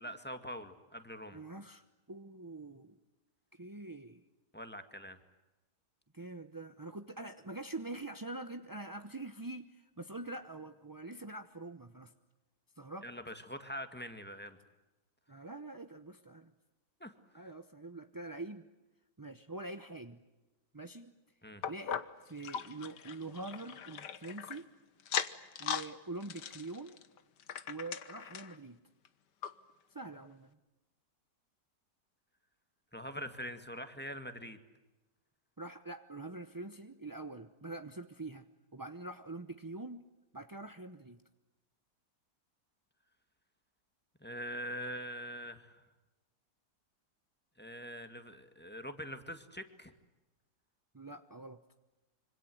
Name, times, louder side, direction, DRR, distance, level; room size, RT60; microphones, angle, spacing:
voice 1, 0.0-1.4 4.5-5.2 13.0-14.6 17.0-17.5 21.4-21.6 32.9-34.6 44.2-45.8 47.6-49.9, equal, 5° left, 8 dB, 1.8 m, -44 dB
voice 2, 1.3-3.0 3.5-4.2 6.1-12.1 12.8-13.1 15.3-16.5 17.3-18.6 19.2-20.2 20.7-21.1 21.7-24.7 25.6-27.0 27.7-28.8 29.9-30.5 35.6-38.5 38.7-40.0 40.3-41.2 50.9-51.6, right 2 dB, 20° right, 8 dB, 0.5 m, -45 dB
sound 1, 21.6-24.6 25.0-25.9 26.2-28.6 29.0-29.1 29.4-29.5 30.2-30.3, left 8 dB, 70° left, 1.8 m, -39 dB
26.5 x 25.5 x 7.8 m, 1.1 s
omnidirectional pair, 1.9 m